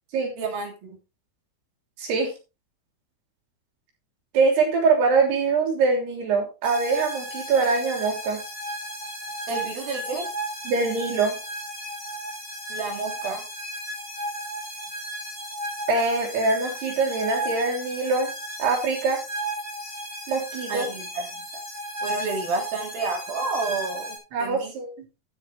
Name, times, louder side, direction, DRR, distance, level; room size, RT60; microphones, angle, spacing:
voice 1, 0.4-1.0 9.5-10.3 12.7-13.5 20.7-21.5 22.0-24.7, right 3 dB, 65° right, 3 dB, 4.4 m, -30 dB
voice 2, 2.0-2.3 4.3-8.4 10.7-11.4 15.9-18.3 18.6-19.2 20.3-20.9 24.3-24.9, right 4 dB, 90° right, 2 dB, 5.5 m, -23 dB
sound 1, 6.6-24.2, right 1 dB, 10° left, 4.4 m, -34 dB
12.5 x 8.2 x 3.5 m, 0.29 s
omnidirectional pair, 4.5 m